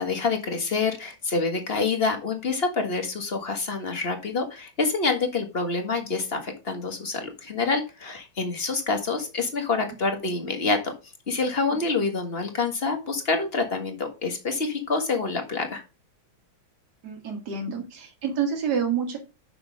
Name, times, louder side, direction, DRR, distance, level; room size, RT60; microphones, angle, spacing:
voice 1, 0.0-10.9 11.3-15.8, left 4 dB, 30° left, 5 dB, 1.6 m, -27 dB
voice 2, 17.0-19.2, right 7 dB, 55° right, 3 dB, 2.4 m, -28 dB
6.4 x 6.1 x 5.2 m, 0.30 s
omnidirectional pair, 2.2 m